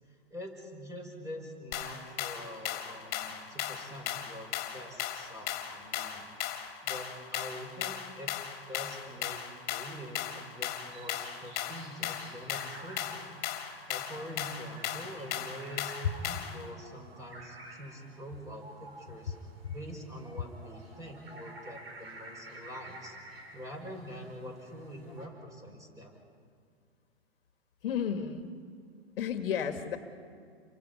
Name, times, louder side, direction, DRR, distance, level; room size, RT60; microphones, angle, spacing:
voice 1, 0.3-6.3 6.8-8.3 8.7-9.4 9.7-13.3 13.9-15.9 16.2-19.3 19.7-23.2 23.5-26.2, equal, 10° right, 2 dB, 5.5 m, -45 dB
sound 1, 1.7-16.6, left 11 dB, 30° left, 2.8 m, -37 dB
sound 2, 10.8-25.3, right 2 dB, 70° right, 5.5 m, -51 dB
voice 2, 27.8-28.5 29.2-30.0, left 8 dB, 60° left, 7 dB, 1.8 m, -32 dB
29.5 x 24.0 x 5.5 m, 2.3 s
figure-of-eight pair, 110°, 32 cm